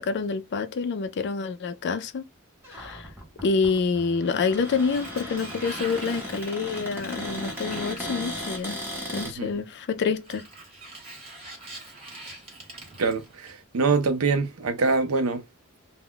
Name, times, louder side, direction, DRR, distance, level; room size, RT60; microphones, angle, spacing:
voice 1, 0.0-2.2 2.7-3.1 3.4-8.8 9.1-10.5 12.2-12.4, left 5 dB, 50° left, 0.4 m, -27 dB
Cupboard open or close, 2.6-9.3, equal, 10° right, 0.9 m, -36 dB
Sliding door, 4.3-9.0 10.1-13.8, right 2 dB, 30° right, 1.1 m, -44 dB
voice 2, 13.0-15.4, right 4 dB, 75° right, 0.5 m, -24 dB
2.2 x 2.1 x 3.6 m
head